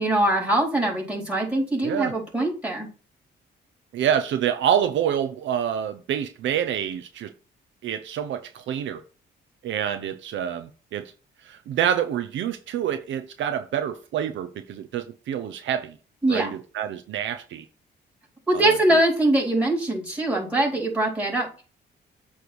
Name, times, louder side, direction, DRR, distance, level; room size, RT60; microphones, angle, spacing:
voice 1, 0.0-2.9 16.2-16.5 18.5-21.6, right 1 dB, 5° right, 4.4 m, -23 dB
voice 2, 3.9-7.3 7.8-9.0 9.6-11.1 11.4-15.9 16.3-17.6 18.5-18.8, right 9 dB, 70° right, 0.6 m, -27 dB
8.2 x 3.3 x 6.1 m
cardioid pair, 90°, 20 cm